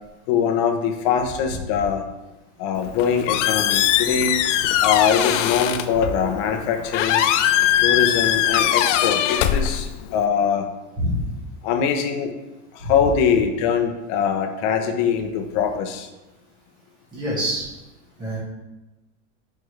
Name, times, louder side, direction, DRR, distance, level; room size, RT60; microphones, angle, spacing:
voice 1, 0.3-2.0 2.6-4.4 4.8-7.2 7.8-10.7 11.6-12.3 12.7-16.1, left 7 dB, 45° left, 6 dB, 0.7 m, -22 dB
Squeak, 2.8-10.3, left 11 dB, 85° left, 0.5 m, -21 dB
voice 2, 17.1-17.6 18.2-18.4, equal, 10° right, -8 dB, 1.4 m, -25 dB
6.6 x 4.6 x 3.2 m, 1.0 s
supercardioid pair, 165°, 36 cm